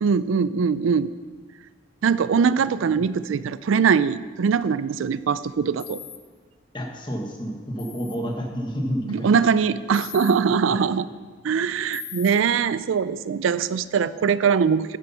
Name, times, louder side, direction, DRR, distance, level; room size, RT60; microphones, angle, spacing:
voice 1, 0.0-1.1 2.0-6.0 9.1-11.1 11.4-15.0, right 6 dB, 80° right, 16 dB, 0.4 m, -22 dB
sound 1, 5.8-6.2 7.8-8.2 9.9-10.3 11.9-12.3, left 10 dB, 70° left, 1.1 m, -38 dB
voice 2, 6.7-9.4 10.7-10.8, equal, 25° left, 1 dB, 1.5 m, -30 dB
10.0 x 9.9 x 5.6 m, 1.5 s
head